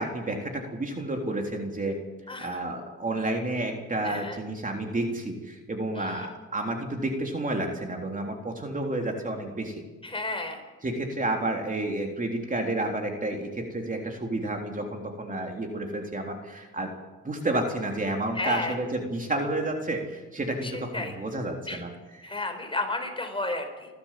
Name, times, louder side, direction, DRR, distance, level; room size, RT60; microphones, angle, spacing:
voice 1, 0.0-2.0 2.4-9.8 10.8-16.9 17.2-22.3, right 2 dB, 25° right, 2 dB, 3.5 m, -30 dB
voice 2, 4.0-4.4 5.9-6.3 10.0-10.6 18.4-18.7 20.6-21.1 21.7-21.8 22.2-23.9, left 2 dB, 15° left, 5 dB, 4.4 m, -32 dB
30.0 x 13.0 x 7.6 m, 1.2 s
cardioid pair, 90°, 30 cm